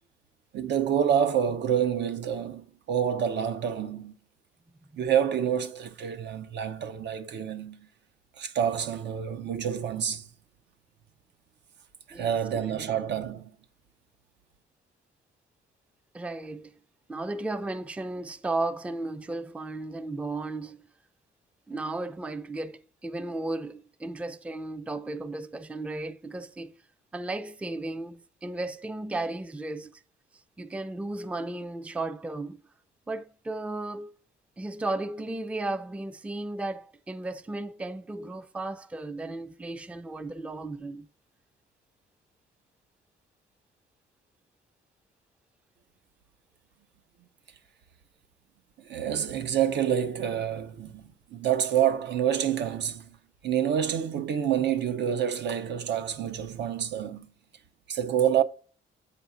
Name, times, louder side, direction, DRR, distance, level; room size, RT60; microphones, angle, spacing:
voice 1, 0.5-4.1 5.0-7.9 8.4-10.3 12.1-13.5 48.9-53.2 53.4-57.3 57.9-58.4, right 9 dB, 65° right, 0.6 m, -27 dB
voice 2, 12.1-12.9 16.1-16.7 17.1-20.9 21.7-26.7 27.1-30.0 30.6-32.6 33.1-34.1 34.6-41.1, right 2 dB, 5° right, 0.4 m, -35 dB
8.3 x 4.8 x 2.5 m
cardioid pair, 90°, 20 cm